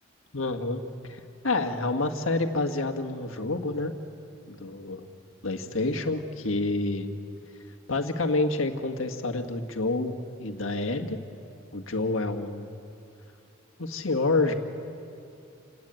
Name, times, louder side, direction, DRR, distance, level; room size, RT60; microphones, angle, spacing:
voice 1, 0.3-3.9 4.5-5.1 5.4-7.1 7.9-11.2 11.7-12.7 13.8-14.5, left 2 dB, 80° left, 5 dB, 1.8 m, -28 dB
28.5 x 19.0 x 9.1 m, 2.6 s
head